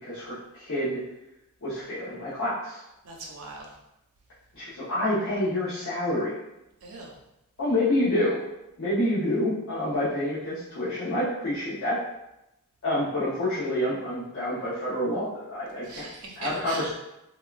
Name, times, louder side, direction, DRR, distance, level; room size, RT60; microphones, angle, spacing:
voice 1, 0.0-1.0 1.6-2.8 4.5-6.3 7.6-8.4 8.8-12.0 12.8-16.0 16.4-16.9, left 1 dB, 60° left, -11 dB, 0.8 m, -28 dB
voice 2, 3.0-3.7 6.8-7.1 15.9-16.9, right 3 dB, 80° right, -1 dB, 0.7 m, -40 dB
3.5 x 2.2 x 2.4 m, 0.89 s
head